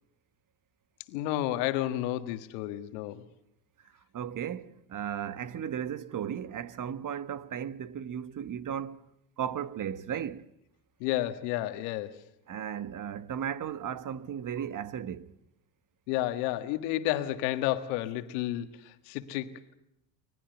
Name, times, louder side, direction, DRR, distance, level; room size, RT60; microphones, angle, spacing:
voice 1, 1.1-3.2 11.0-12.2 16.1-19.7, left 14 dB, 85° left, 1.7 m, -31 dB
voice 2, 4.1-9.0 9.4-10.5 12.5-15.4, right 9 dB, 40° right, 1.3 m, -35 dB
25.5 x 19.0 x 8.0 m
supercardioid pair, 80°, 46 cm